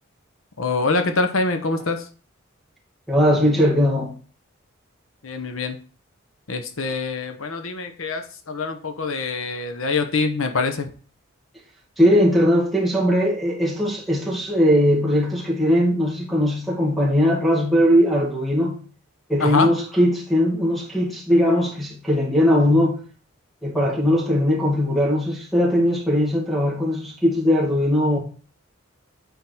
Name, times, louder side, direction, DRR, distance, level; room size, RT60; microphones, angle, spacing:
voice 1, 0.6-2.1 5.2-5.8 6.5-10.9 19.4-19.7, left 3 dB, 75° left, 0.9 m, -24 dB
voice 2, 3.1-4.1 12.0-18.8 19.3-23.0 23.6-28.2, equal, ahead, 2.1 m, -19 dB
9.1 x 3.8 x 4.5 m
head